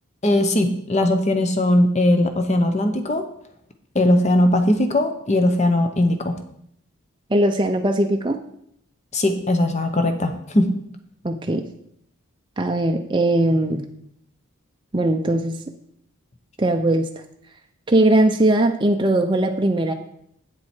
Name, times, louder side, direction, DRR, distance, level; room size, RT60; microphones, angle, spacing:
voice 1, 0.2-3.2 3.9-6.4 9.1-10.7, left 1 dB, 30° left, 6 dB, 0.9 m, -19 dB
voice 2, 7.3-8.4 11.2-11.7 12.6-13.9 14.9-15.6 16.6-17.1 17.9-19.9, right 1 dB, 20° right, 3 dB, 0.5 m, -19 dB
8.5 x 7.5 x 4.4 m, 0.71 s
head